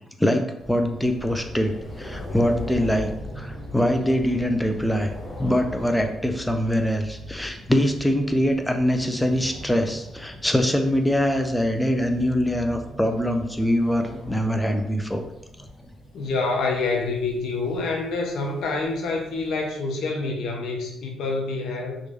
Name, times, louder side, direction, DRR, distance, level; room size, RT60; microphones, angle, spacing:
voice 1, 0.2-5.1 5.4-15.2, equal, 5° left, 5 dB, 0.4 m, -23 dB
sound 1, 0.6-19.7, left 1 dB, 25° left, 0.9 m, -40 dB
voice 2, 16.1-22.0, left 3 dB, 75° left, 0 dB, 0.7 m, -27 dB
3.1 x 2.5 x 3.5 m, 0.84 s
cardioid pair, 90°, 0 cm